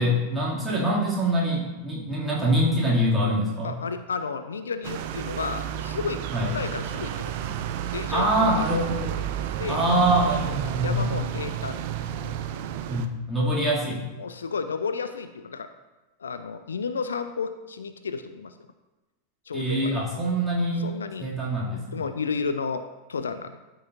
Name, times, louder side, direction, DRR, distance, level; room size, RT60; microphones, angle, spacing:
voice 1, 0.0-3.8 6.3-6.5 8.1-9.2 9.7-11.1 12.9-14.0 19.5-20.9 21.2-22.0, right 1 dB, 10° right, -6 dB, 2.6 m, -24 dB
voice 2, 3.6-7.3 7.9-8.5 9.6-9.8 10.8-12.5 14.2-15.7 16.2-18.5 19.5-19.9 20.8-21.3 21.7-23.6, left 5 dB, 70° left, 10 dB, 0.4 m, -32 dB
sound 1, 4.8-13.1, right 10 dB, 50° right, 0.5 m, -31 dB
13.0 x 5.9 x 2.7 m, 1.1 s
figure-of-eight pair, 90°, 0 cm